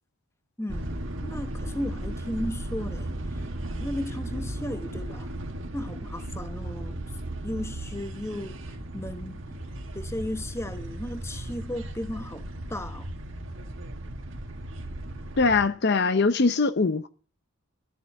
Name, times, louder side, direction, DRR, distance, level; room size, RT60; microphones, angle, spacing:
voice 1, 0.6-1.0 1.2-3.5 3.8-5.3 5.7-7.0 7.4-9.6 9.9-13.1, left 1 dB, 10° left, 0.9 m, -35 dB
sound 1, 0.7-15.7, right 1 dB, 60° right, 1.6 m, -36 dB
voice 2, 15.4-17.1, left 4 dB, 50° left, 0.6 m, -22 dB
13.0 x 7.4 x 7.3 m
head